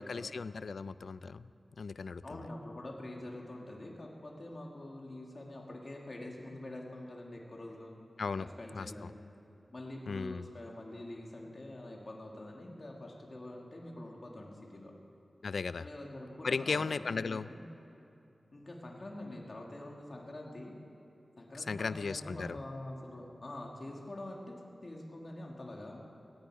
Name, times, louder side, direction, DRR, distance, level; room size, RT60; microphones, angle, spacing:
voice 1, 0.0-1.5 1.8-2.4 8.2-8.5 8.7-9.1 10.1-10.5 15.4-15.9 16.4-17.5 21.7-22.6, left 4 dB, 75° left, 15 dB, 0.4 m, -36 dB
voice 2, 2.2-7.9 8.4-9.2 9.7-14.9 15.8-17.6 18.5-20.8 21.4-26.0, left 1 dB, 45° left, -1 dB, 2.4 m, -45 dB
18.0 x 16.5 x 4.9 m, 2.8 s
wide cardioid pair, 80°, 0 cm